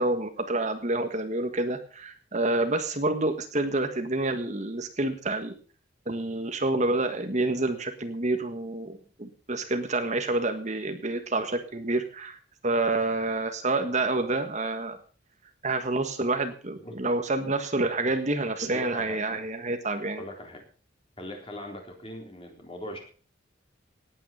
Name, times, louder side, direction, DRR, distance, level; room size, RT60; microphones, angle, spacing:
voice 1, 0.0-5.5 6.1-12.4 12.6-15.0 15.6-20.2, right 2 dB, 40° right, 7 dB, 1.5 m, -28 dB
voice 2, 18.7-19.3 20.2-20.6 21.2-23.0, left 1 dB, 30° left, 2 dB, 3.9 m, -40 dB
18.0 x 9.2 x 5.6 m, 0.39 s
head